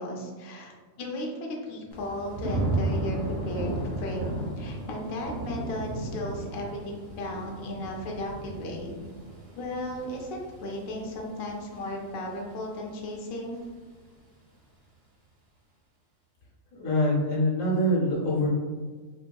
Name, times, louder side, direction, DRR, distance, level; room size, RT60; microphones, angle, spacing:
voice 1, 0.0-9.0 9.5-13.6, left 1 dB, 55° left, -1 dB, 0.6 m, -35 dB
Thunder / Rain, 1.9-12.8 13.3-13.7, right 1 dB, 35° right, 0.7 m, -34 dB
voice 2, 16.7-18.5, equal, 80° left, -4 dB, 1.4 m, -24 dB
4.0 x 2.6 x 2.2 m, 1.5 s
omnidirectional pair, 1.4 m